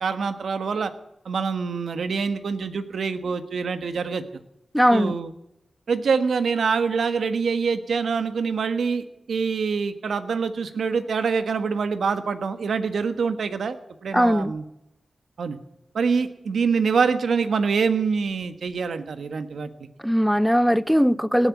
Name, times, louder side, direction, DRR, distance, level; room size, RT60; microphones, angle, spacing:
voice 1, 0.0-0.9 1.2-4.2 4.9-5.3 5.9-13.8 14.0-14.6 15.4-15.6 15.9-19.9, right 5 dB, 90° right, 1.3 m, -25 dB
voice 2, 4.7-5.1 14.1-14.5 20.0-21.5, equal, ahead, 0.6 m, -19 dB
18.0 x 9.0 x 8.3 m
cardioid pair, 65°, 0 cm